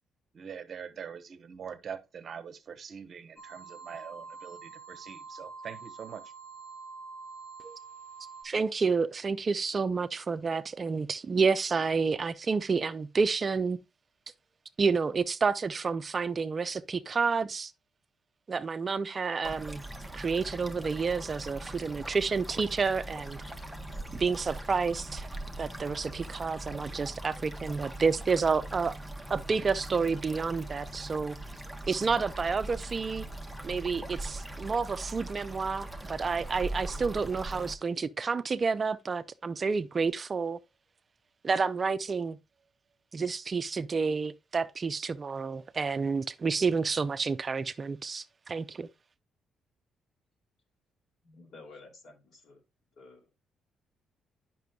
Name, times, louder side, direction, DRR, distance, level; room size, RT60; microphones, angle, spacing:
voice 1, 0.3-6.2, right 7 dB, 55° right, 0.8 m, -43 dB
sound 1, 3.4-8.4, right 4 dB, 85° left, 1.7 m, -46 dB
voice 2, 8.4-13.8 14.8-17.7 18.5-19.8 20.1-23.4 24.2-25.3 25.6-29.0 29.3-31.4 31.9-33.3 33.6-40.6 41.4-42.4 43.1-48.9, right 5 dB, 35° right, 0.4 m, -29 dB
sound 2, 19.4-37.7, right 1 dB, ahead, 0.9 m, -41 dB
voice 3, 51.2-52.6 53.0-53.3, left 3 dB, 65° left, 2.5 m, -52 dB
9.1 x 6.0 x 2.2 m
cardioid pair, 90°, 0 cm